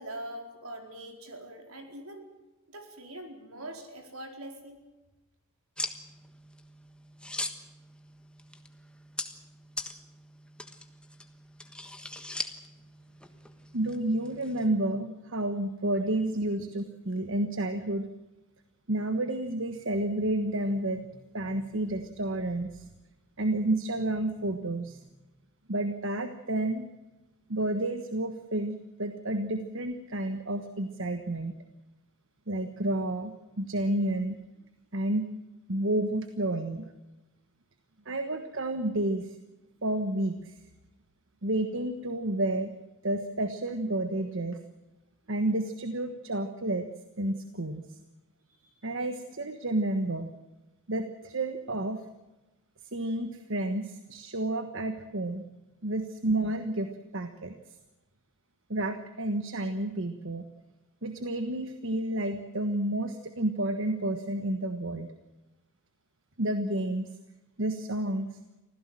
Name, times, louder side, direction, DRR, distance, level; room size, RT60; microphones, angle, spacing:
voice 1, 0.0-2.3 2.7-4.8 48.6-48.7, right 1 dB, 75° right, 4 dB, 4.5 m, -43 dB
sound 1, 5.8-14.7, left 2 dB, 5° left, 1.4 m, -41 dB
voice 2, 13.7-18.1 18.9-22.9 23.4-25.0 25.7-26.8 27.5-31.5 32.5-34.4 34.9-35.3 35.7-36.9 38.0-39.4 39.8-40.6 41.4-42.7 43.0-44.6 45.3-46.9 47.2-48.0 48.8-50.3 50.9-52.0 52.9-55.4 55.8-57.5 58.7-60.4 61.0-65.1 66.4-67.1 67.6-68.3, right 1 dB, 60° right, 8 dB, 1.4 m, -30 dB
25.5 x 16.0 x 7.7 m, 1.1 s
head